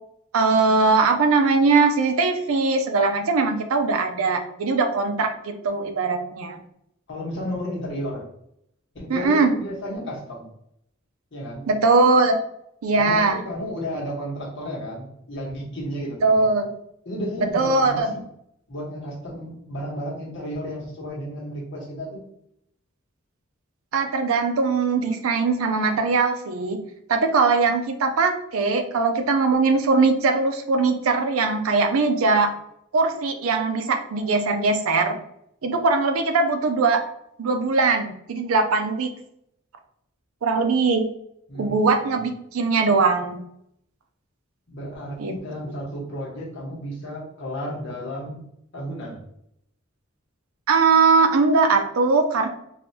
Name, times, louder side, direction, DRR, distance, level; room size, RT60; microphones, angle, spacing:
voice 1, 0.3-6.6 9.1-9.6 11.7-12.4 12.8-13.4 16.2-16.8 17.5-18.1 23.9-26.8 27.1-32.5 32.9-35.2 35.6-37.0 37.4-39.1 40.4-41.0 41.5-43.4 45.2-45.3 50.7-52.5, right 4 dB, 90° right, 6 dB, 0.5 m, -20 dB
voice 2, 7.1-8.2 8.9-10.5 11.3-11.7 13.0-16.4 17.0-18.2 18.7-22.2 41.5-41.8 42.1-42.2 44.7-48.4 48.7-49.2, equal, 60° left, -4 dB, 1.2 m, -33 dB
3.3 x 2.6 x 2.7 m, 0.75 s
head